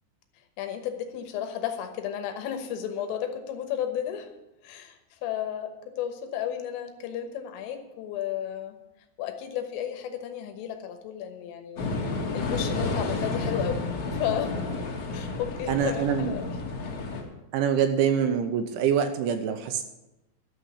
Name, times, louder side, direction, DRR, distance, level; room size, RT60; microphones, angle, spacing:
voice 1, 0.6-4.3 4.6-8.8 9.2-11.9 12.3-14.6 15.1-16.6, left 9 dB, 80° left, 6 dB, 3.7 m, -33 dB
sound 1, 11.8-17.2, left 3 dB, 45° left, 2.5 m, -31 dB
voice 2, 15.7-16.3 17.5-19.8, right 8 dB, 80° right, 7 dB, 2.9 m, -25 dB
13.0 x 6.5 x 8.3 m, 0.96 s
omnidirectional pair, 5.9 m